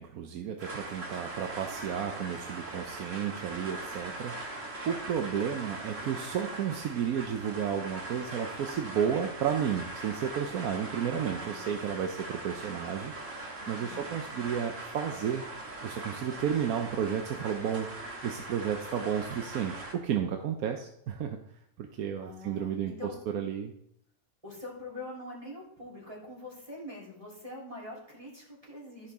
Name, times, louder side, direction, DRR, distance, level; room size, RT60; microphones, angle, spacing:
voice 1, 0.0-15.4 15.8-21.4 21.8-23.7, right 8 dB, 90° right, 4 dB, 1.2 m, -32 dB
sound 1, 0.6-19.9, right 2 dB, 60° right, 1.9 m, -41 dB
voice 2, 11.1-11.9 13.6-14.1 22.2-23.1 24.4-29.1, left 1 dB, 25° right, -6 dB, 3.2 m, -44 dB
14.0 x 5.7 x 3.5 m, 0.72 s
omnidirectional pair, 1.5 m